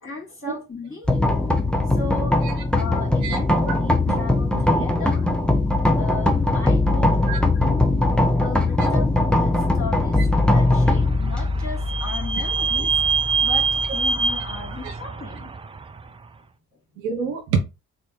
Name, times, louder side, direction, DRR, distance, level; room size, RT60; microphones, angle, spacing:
voice 1, 0.0-1.4 1.9-2.4 2.7-5.2 6.0-7.1 7.5-7.9 8.3-13.0 13.4-15.5, left 4 dB, 25° left, 2.3 m, -36 dB
sound 1, 1.1-14.9, left 2 dB, ahead, 1.0 m, -21 dB
voice 2, 7.0-7.4 8.8-8.9 12.8-12.9 14.8-15.0 17.0-17.6, right 6 dB, 75° right, 0.8 m, -27 dB
Vehicle / Squeak, 10.5-16.1, right 5 dB, 15° right, 0.3 m, -25 dB
3.7 x 2.8 x 3.7 m
figure-of-eight pair, 40°, 47 cm